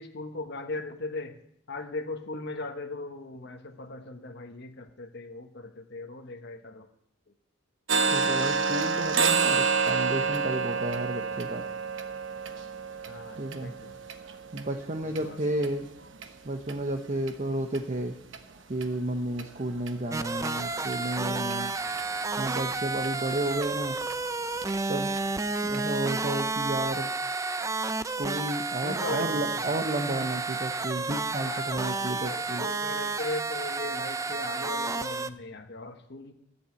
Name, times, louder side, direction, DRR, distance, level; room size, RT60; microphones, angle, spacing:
voice 1, 0.0-1.4 1.7-6.9 13.1-14.0 15.0-15.4 20.2-20.9 28.8-30.2 31.4-36.3, left 2 dB, 55° left, 7 dB, 1.1 m, -39 dB
sound 1, 7.9-15.7 16.1-16.3 16.7-16.8 17.3-17.4 17.7-17.8 18.3-18.4 18.8-18.9 19.4-19.5 19.9-20.0 20.5-20.6 20.9-21.0 21.5-21.6 22.0-22.1 22.6-22.7 23.0-23.1 23.6-23.7 24.1-24.2 24.6-24.7 25.2-25.3 25.7-25.8, right 5 dB, 65° right, 1.1 m, -28 dB
voice 2, 8.1-11.6 13.4-13.7 14.5-15.9 16.4-18.2 18.7-21.7 22.4-24.0 24.9-25.1 25.6-27.1 28.2-32.7, right 1 dB, 35° right, 4 dB, 0.9 m, -32 dB
sound 2, 20.1-35.3, right 3 dB, 15° right, 0.4 m, -31 dB
14.0 x 7.2 x 8.1 m, 0.74 s
head